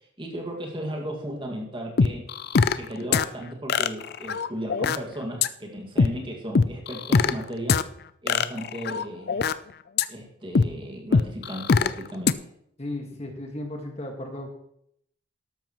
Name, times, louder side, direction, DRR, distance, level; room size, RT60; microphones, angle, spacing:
voice 1, 0.2-2.3 2.8-7.8 8.2-9.4 10.1-12.5, equal, 25° right, 0 dB, 2.0 m, -35 dB
sound 1, 2.0-2.9 3.1-3.2 3.7-5.0 5.4-5.5 6.0-6.1 6.6-7.3 7.7-7.8 8.3-9.5 10.0-10.1 10.6-10.7 11.1-11.9 12.3-12.4, left 5 dB, 50° left, 0.4 m, -21 dB
voice 2, 12.8-14.5, left 1 dB, 30° left, 2 dB, 1.7 m, -35 dB
13.0 x 12.0 x 3.1 m, 0.72 s
head